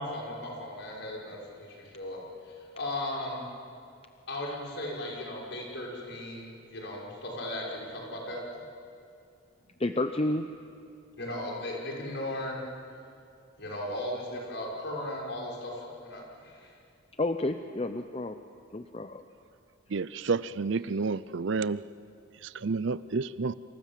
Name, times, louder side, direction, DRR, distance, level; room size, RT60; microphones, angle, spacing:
voice 1, 0.0-3.4 4.3-8.4 11.2-12.6 13.6-16.7, left 1 dB, 55° left, -2 dB, 6.2 m, -37 dB
voice 2, 9.8-10.4 17.2-18.4 18.7-19.2, left 2 dB, 30° left, 8 dB, 0.7 m, -30 dB
voice 3, 19.9-21.8 22.4-23.5, right 4 dB, 60° right, 17 dB, 0.6 m, -30 dB
28.5 x 27.0 x 7.6 m, 2.4 s
head